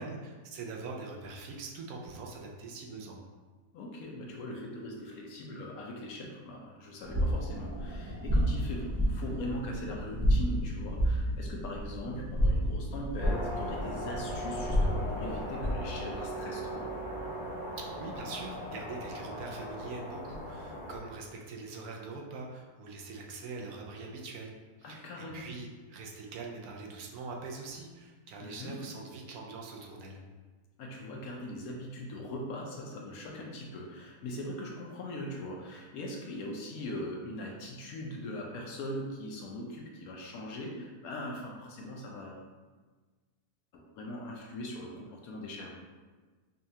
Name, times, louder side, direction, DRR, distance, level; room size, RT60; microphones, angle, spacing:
voice 1, 0.0-3.2 17.8-24.5 24.8-30.2, right 3 dB, 75° right, 0 dB, 1.1 m, -43 dB
voice 2, 3.7-16.8 24.8-25.5 28.4-28.8 30.8-42.4 43.7-45.8, left 1 dB, 70° left, -1 dB, 1.0 m, -40 dB
sound 1, 7.0-15.9, equal, 10° right, 0.5 m, -31 dB
sound 2, 13.2-21.0, equal, 50° left, 0.6 m, -39 dB
5.3 x 2.3 x 2.7 m, 1.4 s
omnidirectional pair, 1.7 m